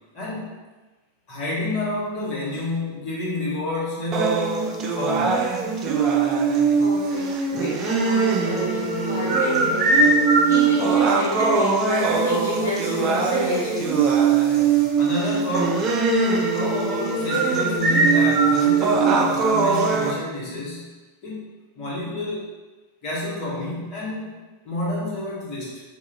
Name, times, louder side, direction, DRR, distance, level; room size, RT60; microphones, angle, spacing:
voice 1, 0.1-0.5 1.3-4.4 4.9-5.5 15.0-16.0 16.5-20.9 21.2-21.5 21.7-22.5 23.0-24.4 24.6-25.8, left 1 dB, 35° left, -6 dB, 1.3 m, -29 dB
sound 1, 4.1-20.1, right 4 dB, 30° right, 0.4 m, -21 dB
voice 2, 6.8-7.3 7.6-9.8 10.5-14.8, left 1 dB, 70° left, -6 dB, 0.8 m, -30 dB
3.1 x 2.9 x 3.6 m, 1.2 s
figure-of-eight pair, 90°, 0 cm